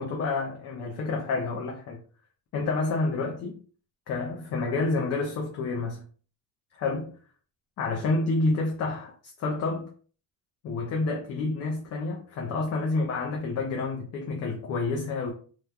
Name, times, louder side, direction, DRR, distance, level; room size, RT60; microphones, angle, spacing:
voice 1, 0.0-2.0 2.5-3.6 4.1-6.0 6.7-7.1 7.8-9.9 10.6-15.3, left 3 dB, 45° left, 0.5 m, -29 dB
3.0 x 2.2 x 2.3 m
cardioid pair, 130°, 38 cm